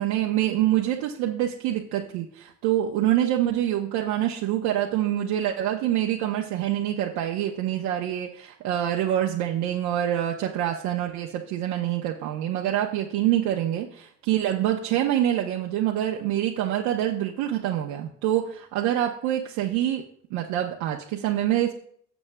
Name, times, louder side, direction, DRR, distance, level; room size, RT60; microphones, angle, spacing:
voice 1, 0.0-20.0 20.3-21.7, right 12 dB, 80° right, 0 dB, 0.9 m, -26 dB
17.0 x 7.0 x 2.2 m, 0.65 s
hypercardioid pair, 50°, 32 cm